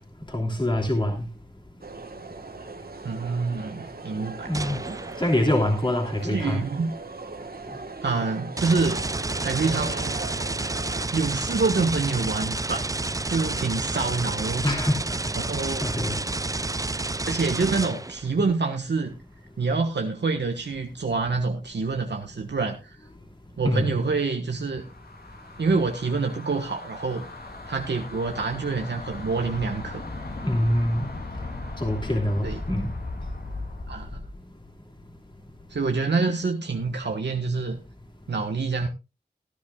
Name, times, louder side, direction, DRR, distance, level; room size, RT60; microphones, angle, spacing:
voice 1, 0.3-1.3 4.5-4.8 5.2-6.6 14.6-15.2 15.5-16.2 23.6-23.9 30.4-31.1 31.8-32.9, left 1 dB, 25° left, 3.0 m, -25 dB
sound 1, 1.8-11.1, right 3 dB, 60° right, 1.5 m, -39 dB
voice 2, 3.0-4.5 6.2-6.9 8.0-9.0 9.4-10.2 11.1-12.8 13.3-14.6 15.4-15.8 17.3-19.1 19.6-23.0 23.6-24.8 25.6-27.2 27.7-30.0 32.4-32.6 33.9-34.2 35.7-37.8 38.3-38.9, right 4 dB, 80° right, 1.4 m, -26 dB
sound 2, 4.5-5.5 8.6-18.3, right 2 dB, 20° right, 0.5 m, -30 dB
sound 3, 24.7-34.4, left 2 dB, 60° left, 3.1 m, -37 dB
18.0 x 10.5 x 2.4 m
cardioid pair, 45°, 18 cm